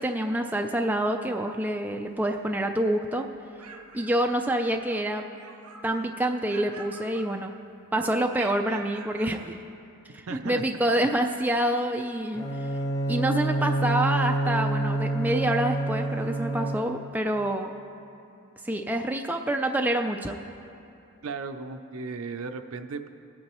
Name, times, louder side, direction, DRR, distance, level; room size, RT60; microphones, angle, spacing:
voice 1, 0.0-3.3 3.9-5.2 5.8-7.5 7.9-9.6 10.1-12.7 13.1-17.7 18.6-20.4, right 1 dB, 10° right, 4 dB, 0.3 m, -27 dB
sound 1, 3.3-5.0 5.3-6.1 6.5-7.7 8.3-9.4, right 4 dB, 85° right, 0.9 m, -46 dB
voice 2, 10.3-10.6 21.2-23.1, right 4 dB, 65° right, 8 dB, 0.5 m, -35 dB
Bowed string instrument, 12.3-17.2, right 2 dB, 15° left, 0.7 m, -28 dB
20.0 x 8.4 x 3.0 m, 2.8 s
head